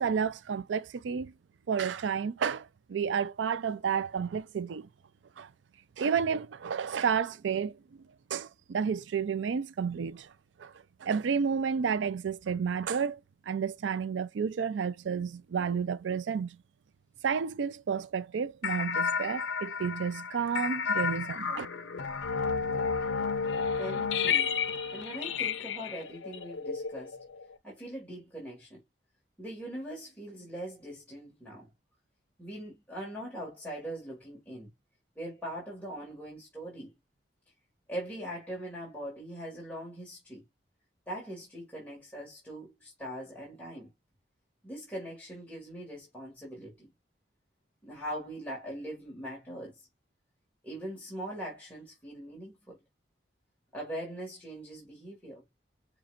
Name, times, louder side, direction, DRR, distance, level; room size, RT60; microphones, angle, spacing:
voice 1, 0.0-1.3 1.7-4.9 5.4-5.5 6.0-7.7 8.3-10.3 10.6-10.7 11.0-13.2 13.5-16.6 17.2-21.7, right 6 dB, 90° right, 0.4 m, -31 dB
sound 1, 18.6-27.5, left 6 dB, 85° left, 0.6 m, -32 dB
voice 2, 23.8-24.6 24.9-27.2 27.6-28.8 29.4-31.7 32.4-34.7 35.2-36.9 37.9-40.4 41.1-43.9 44.6-46.9 47.8-49.8 50.6-52.8 53.7-55.4, equal, 10° left, 1.9 m, -41 dB
5.6 x 2.9 x 2.5 m
head